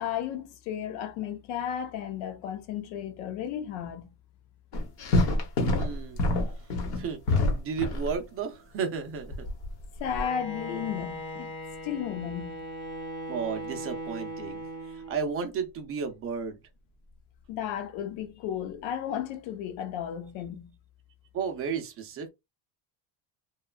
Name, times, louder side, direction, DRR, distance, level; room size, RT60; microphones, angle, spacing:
voice 1, 0.0-4.1 10.0-11.5 11.8-12.6 17.5-20.7, left 9 dB, 85° left, 0.8 m, -34 dB
sound 1, 4.7-8.1 9.3-10.2, left 2 dB, 55° left, 1.0 m, -26 dB
voice 2, 5.7-6.2 7.0-7.2 7.5-9.5 13.3-16.6 21.3-22.3, right 6 dB, 30° right, 0.4 m, -33 dB
Bowed string instrument, 10.0-15.4, equal, 25° left, 1.0 m, -39 dB
3.1 x 2.2 x 2.2 m
cardioid pair, 155°, 48 cm